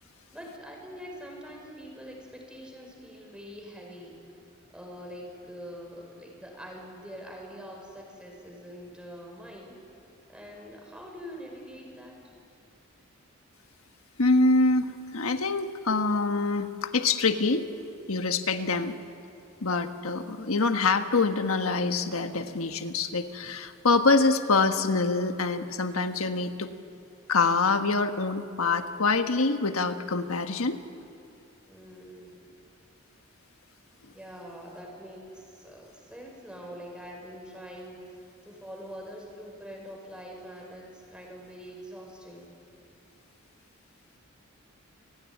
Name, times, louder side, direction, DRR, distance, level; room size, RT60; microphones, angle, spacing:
voice 1, 0.3-4.2 4.7-9.8 10.3-12.2 31.7-32.5 34.1-42.5, equal, 5° right, 0 dB, 5.5 m, -44 dB
voice 2, 14.2-17.7 18.1-18.9 19.6-26.7 27.3-30.8, left 3 dB, 90° left, 7 dB, 1.4 m, -25 dB
29.0 x 18.0 x 9.9 m, 2.7 s
head